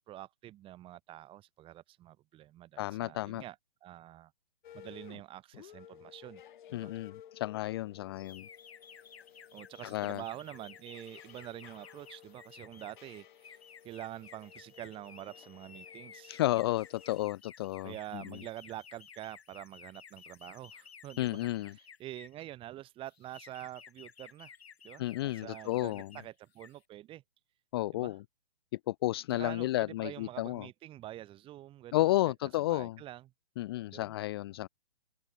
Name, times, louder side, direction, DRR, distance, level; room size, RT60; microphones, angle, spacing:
voice 1, 0.1-3.6 3.8-4.3 4.7-6.4 6.7-6.9 9.5-13.6 13.8-16.7 17.8-24.5 24.8-27.2 27.9-28.2 29.3-32.1 32.6-33.3 33.9-34.1, right 14 dB, 15° right, 3.0 m, -46 dB
voice 2, 2.8-3.4 6.7-8.5 9.8-10.2 16.3-18.2 21.2-21.7 25.0-26.1 27.7-28.2 28.9-30.7 31.9-33.0 33.6-34.7, left 16 dB, 25° left, 0.6 m, -32 dB
sound 1, 4.6-5.2 5.5-17.3, left 10 dB, 50° left, 2.3 m, -55 dB
sound 2, 8.2-22.5 23.1-26.3 26.5-26.8, left 7 dB, 75° left, 2.6 m, -55 dB
open air
hypercardioid pair, 150°, 32 cm